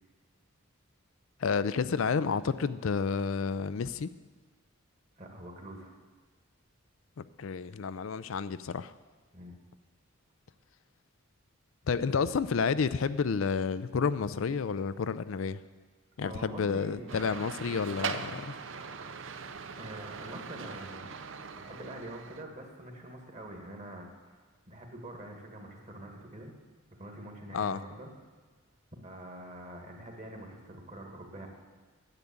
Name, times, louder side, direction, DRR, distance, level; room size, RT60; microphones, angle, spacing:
voice 1, 1.4-4.1 7.2-8.9 11.9-15.6 16.2-18.5 27.5-27.8, left 5 dB, 70° left, 14 dB, 0.4 m, -30 dB
voice 2, 5.2-5.9 9.3-9.6 16.2-17.2 19.8-21.1 21.6-24.4 24.7-26.5 26.9-28.1 29.0-31.5, right 1 dB, 35° right, 2 dB, 2.0 m, -45 dB
sound 1, 17.1-22.4, right 6 dB, 60° right, 0.6 m, -40 dB
10.5 x 8.2 x 8.7 m, 1.4 s
head